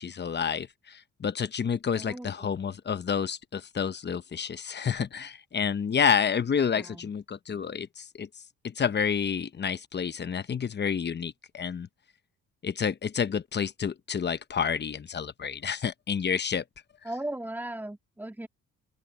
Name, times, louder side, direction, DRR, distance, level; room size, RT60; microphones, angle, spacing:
voice 1, 0.0-8.3 8.6-11.9 12.6-16.6, left 7 dB, 35° left, 0.9 m, -29 dB
voice 2, 1.9-2.5 6.7-7.1 17.0-18.5, right 1 dB, 5° right, 2.5 m, -37 dB
open air
cardioid pair, 90°, 30 cm